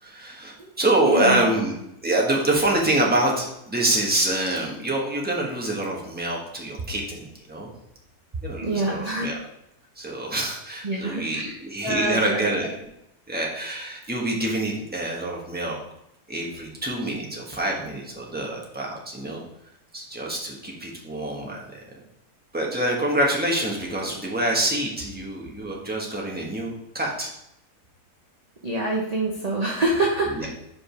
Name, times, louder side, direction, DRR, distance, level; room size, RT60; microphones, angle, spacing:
voice 1, 0.0-1.7 2.0-7.7 8.4-9.4 10.0-12.7 13.3-15.8 16.3-19.4 19.9-21.8 22.5-27.3 30.3-30.5, right 1 dB, 5° right, -2 dB, 1.1 m, -26 dB
voice 2, 1.0-1.5 8.6-9.3 10.8-11.5 11.8-12.5 28.6-30.5, right 2 dB, 30° right, -2 dB, 0.8 m, -26 dB
5.2 x 5.0 x 5.1 m, 0.81 s
omnidirectional pair, 1.7 m